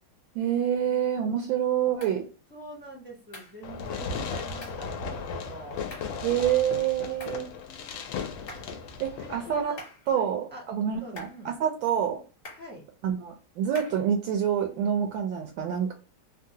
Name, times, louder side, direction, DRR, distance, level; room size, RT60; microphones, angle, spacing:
voice 1, 0.3-2.2 6.2-7.5 9.0-9.8 10.1-12.2 13.0-15.9, right 9 dB, 75° right, 3 dB, 1.2 m, -27 dB
voice 2, 0.9-1.2 2.5-5.8 7.6-8.2 9.2-9.8 10.1-10.7 11.0-11.5 12.5-12.8, right 1 dB, 10° right, -4 dB, 0.5 m, -46 dB
sound 1, 2.0-2.2 3.3-3.6 4.6-4.9 5.9-6.2 7.2-7.5 8.5-8.8 9.8-10.1 11.2-11.5 12.4-12.7 13.7-14.1, left 1 dB, 40° left, 1.3 m, -45 dB
Fireworks, 3.6-9.6, left 5 dB, 75° left, 1.2 m, -36 dB
3.6 x 2.0 x 2.7 m, 0.34 s
omnidirectional pair, 2.3 m